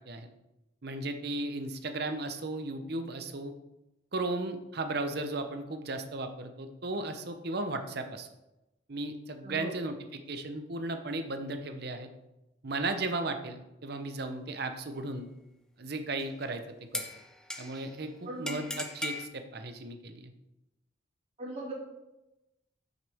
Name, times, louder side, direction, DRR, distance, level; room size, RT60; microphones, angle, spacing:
voice 1, 0.8-3.5 4.1-8.3 8.9-12.1 12.6-15.3 15.8-16.6 16.9-17.1 17.6-20.3, right 2 dB, 55° right, 7 dB, 0.8 m, -35 dB
voice 2, 9.4-9.7 18.2-18.7 21.4-21.7, right 1 dB, 35° right, -6 dB, 2.8 m, -39 dB
sound 1, 16.2-16.5 16.9-17.9 18.5-19.3, left 1 dB, 5° left, 0.5 m, -38 dB
8.2 x 6.5 x 3.5 m, 0.96 s
head